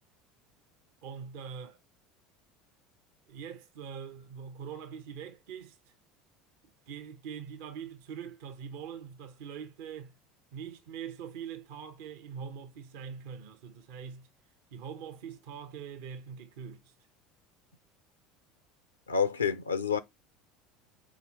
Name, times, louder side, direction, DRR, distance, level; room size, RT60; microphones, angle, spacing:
voice 1, 1.0-1.8 3.3-5.8 6.9-10.2 10.5-14.3 14.7-16.9, right 7 dB, 60° right, 0.8 m, -43 dB
voice 2, 19.1-20.0, left 6 dB, 85° left, 0.5 m, -28 dB
4.8 x 4.4 x 5.4 m
figure-of-eight pair, 70°, 0 cm